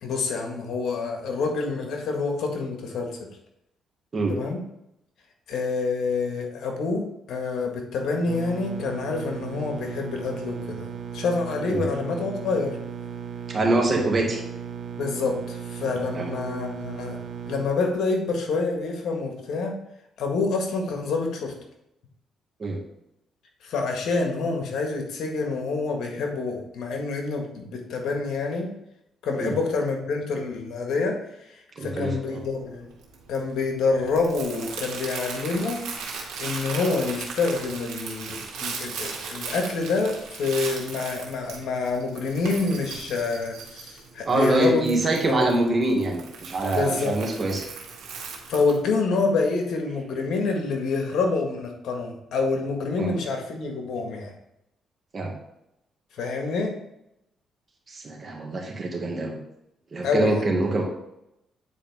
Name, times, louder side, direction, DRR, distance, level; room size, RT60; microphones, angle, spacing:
voice 1, 0.0-3.1 4.3-4.6 5.5-12.8 15.0-17.2 17.5-19.8 20.2-21.5 23.6-28.7 29.2-31.2 31.8-32.9 33.3-35.8 36.4-44.9 45.3-45.5 46.7-47.2 48.5-54.3 56.2-56.7 60.0-60.4, left 4 dB, 75° left, 2 dB, 1.6 m, -27 dB
sound 1, 8.3-17.6, right 7 dB, 65° right, 1.3 m, -36 dB
voice 2, 13.5-14.4 16.1-16.3 22.6-22.8 29.4-29.5 31.8-32.4 44.2-47.6 53.0-53.1 55.1-55.3 57.9-59.4 59.9-60.8, right 2 dB, 35° right, 0 dB, 2.0 m, -24 dB
Crumpling crinkling, 32.4-48.8, right 5 dB, 90° right, 1.8 m, -38 dB
9.0 x 4.8 x 3.6 m, 0.83 s
cardioid pair, 90°, 0 cm